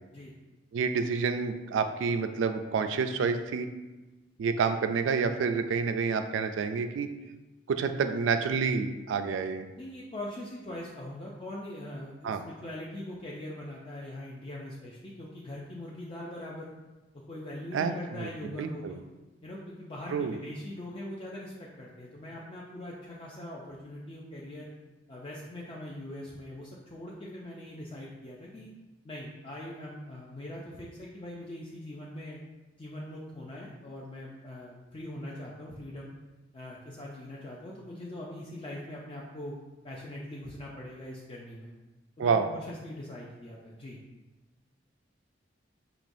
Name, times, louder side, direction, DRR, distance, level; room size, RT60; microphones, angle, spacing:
voice 1, 0.7-3.7 4.4-7.1 7.7-9.7 12.2-12.4 17.7-19.0 20.1-20.4 42.2-42.5, right 5 dB, 80° right, 8 dB, 0.3 m, -28 dB
voice 2, 9.8-16.7 17.3-19.0 19.4-24.7 25.1-28.7 29.0-32.4 32.8-36.1 36.5-39.5 39.8-41.7 42.2-44.0, left 1 dB, 30° left, -4 dB, 0.4 m, -42 dB
4.9 x 2.9 x 2.6 m, 1.1 s
head